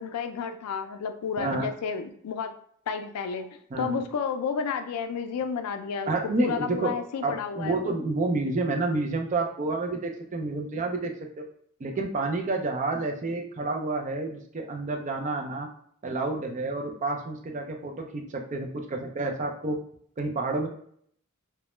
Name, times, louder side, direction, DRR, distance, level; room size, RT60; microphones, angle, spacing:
voice 1, 0.0-2.5 2.9-3.5 3.8-7.9, left 6 dB, 85° left, 8 dB, 0.3 m, -31 dB
voice 2, 1.4-1.7 3.7-4.0 6.1-6.9 7.2-11.4 11.8-15.7 16.0-19.8 20.2-20.7, right 3 dB, 35° right, 3 dB, 0.4 m, -29 dB
2.1 x 2.1 x 2.9 m, 0.65 s
head